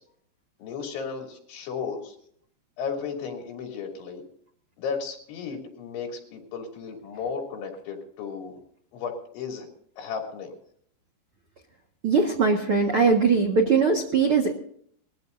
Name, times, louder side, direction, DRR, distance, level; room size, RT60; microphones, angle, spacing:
voice 1, 0.6-2.2 2.8-4.2 4.8-8.6 8.9-9.7 10.0-10.5, left 5 dB, 80° left, 2 dB, 5.5 m, -34 dB
voice 2, 12.0-14.5, right 4 dB, 90° right, 2 dB, 1.2 m, -21 dB
21.5 x 15.0 x 2.7 m, 0.63 s
omnidirectional pair, 5.3 m